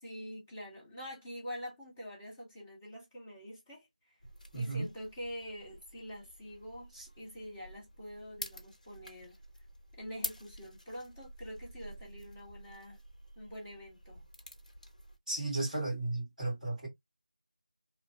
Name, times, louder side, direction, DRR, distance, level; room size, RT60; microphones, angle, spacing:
voice 1, 0.0-3.9 4.5-9.4 9.9-13.0 13.4-14.2, equal, 15° left, 1.1 m, -45 dB
sound 1, 4.2-15.2, left 1 dB, 80° left, 1.0 m, -48 dB
voice 2, 4.5-4.9 6.9-7.1 15.3-16.9, right 2 dB, 5° right, 1.7 m, -34 dB
3.0 x 2.1 x 2.6 m
figure-of-eight pair, 170°, 4 cm